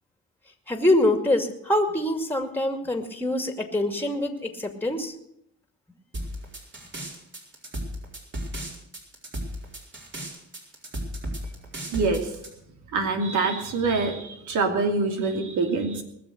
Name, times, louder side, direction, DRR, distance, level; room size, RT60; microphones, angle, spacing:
voice 1, 0.7-5.1, left 1 dB, 5° left, 6 dB, 2.3 m, -24 dB
sound 1, 6.1-12.5, right 1 dB, 40° right, 4.8 m, -34 dB
voice 2, 11.9-12.3 12.9-16.0, right 3 dB, 75° right, 5 dB, 2.8 m, -25 dB
20.0 x 7.1 x 7.9 m, 0.75 s
cardioid pair, 90°, 30 cm